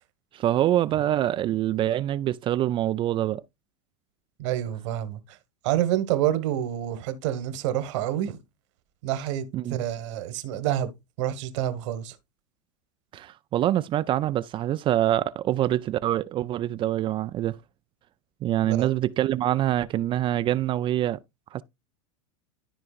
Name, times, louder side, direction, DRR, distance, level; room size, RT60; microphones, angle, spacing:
voice 1, 0.3-3.4 9.5-9.8 13.1-17.5 18.4-21.2 21.5-21.6, right 12 dB, 30° right, 0.4 m, -25 dB
voice 2, 4.4-5.4 5.6-8.4 9.0-10.9 11.2-12.1 18.6-18.9, right 12 dB, 65° right, 1.4 m, -28 dB
13.0 x 4.5 x 2.4 m
hypercardioid pair, 110°, 16 cm